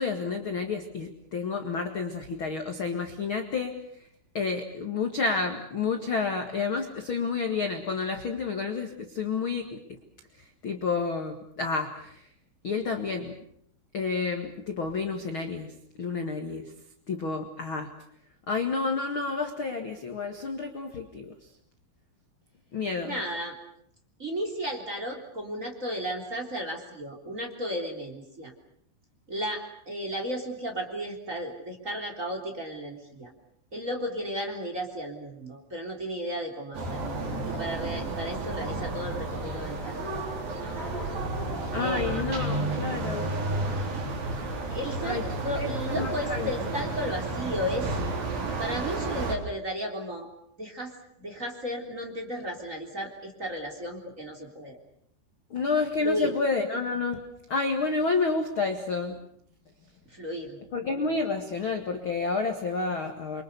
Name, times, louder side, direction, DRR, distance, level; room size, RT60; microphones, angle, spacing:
voice 1, 0.0-3.7 4.3-10.0 10.6-12.3 12.6-13.3 13.9-15.7 16.0-16.6 17.1-17.9 18.5-21.3 22.7-23.2 41.7-43.3 45.0-45.2 45.6-46.5 55.5-57.2 57.5-59.2 60.7-63.4, left 4 dB, 45° left, 4 dB, 1.7 m, -30 dB
voice 2, 23.0-23.6 24.2-28.5 29.3-33.3 33.7-37.2 37.4-40.0 40.5-40.8 41.8-42.2 44.7-47.9 48.6-50.3 50.6-50.9 51.2-54.8 56.0-56.3 60.1-60.6, equal, 20° right, 3 dB, 3.3 m, -34 dB
sound 1, 36.7-49.4, right 2 dB, 50° right, 5.7 m, -32 dB
28.5 x 24.5 x 6.9 m, 0.68 s
omnidirectional pair, 5.3 m